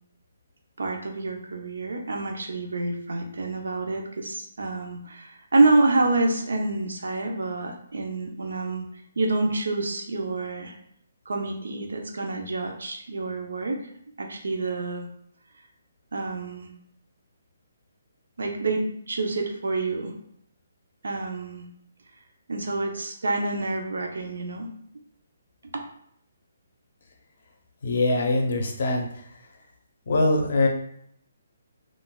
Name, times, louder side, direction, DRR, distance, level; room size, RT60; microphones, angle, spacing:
voice 1, 0.8-8.8 9.2-10.7 11.3-13.9 14.2-15.1 16.1-16.7 18.4-20.1 21.0-21.6 22.5-24.7, right 2 dB, 80° right, 3 dB, 0.6 m, -27 dB
voice 2, 27.8-29.2 30.1-30.7, left 2 dB, 45° left, 2 dB, 0.5 m, -23 dB
3.7 x 2.4 x 2.2 m, 0.70 s
hypercardioid pair, 175°, 0 cm